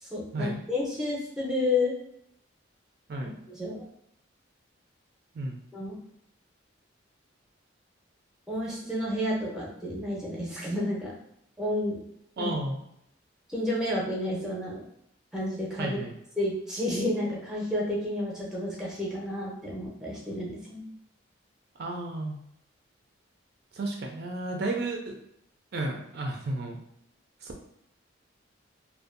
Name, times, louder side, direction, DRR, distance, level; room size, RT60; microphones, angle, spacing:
voice 1, 0.0-1.9 3.5-3.8 5.7-6.0 8.5-11.1 11.6-12.0 12.4-12.5 13.5-14.8 15.3-16.0 16.4-20.9, left 1 dB, 5° right, -4 dB, 0.5 m, -30 dB
voice 2, 12.4-12.8 15.8-16.1 21.8-22.4 23.7-25.2 25.7-26.8 27.4-27.6, right 2 dB, 50° right, 1 dB, 0.3 m, -32 dB
2.6 x 2.2 x 2.4 m, 0.77 s
head